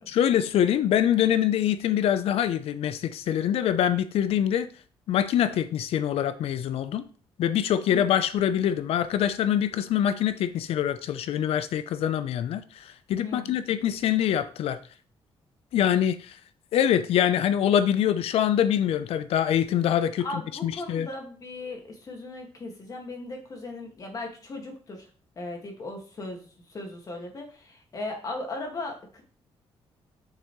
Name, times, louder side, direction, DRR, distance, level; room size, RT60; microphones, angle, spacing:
voice 1, 0.1-4.7 5.1-7.0 7.4-14.8 15.7-16.3 16.7-20.3 20.6-21.1, left 10 dB, 75° left, 0.6 m, -24 dB
voice 2, 13.2-13.6 20.2-25.1 25.4-29.2, left 2 dB, 35° left, 1.9 m, -37 dB
6.8 x 6.6 x 3.1 m
cardioid pair, 140°, 10 cm